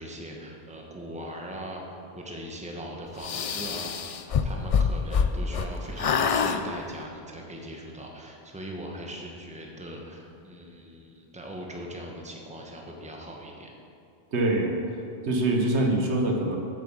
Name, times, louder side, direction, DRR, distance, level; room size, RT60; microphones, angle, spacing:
voice 1, 0.0-13.7, equal, 5° right, 0 dB, 1.0 m, -40 dB
sound 1, 3.2-5.7 6.0-6.6, left 6 dB, 60° left, 0.3 m, -25 dB
voice 2, 14.3-14.7 15.2-16.6, right 2 dB, 85° right, 1 dB, 1.4 m, -24 dB
8.3 x 7.0 x 6.2 m, 2.5 s
omnidirectional pair, 1.1 m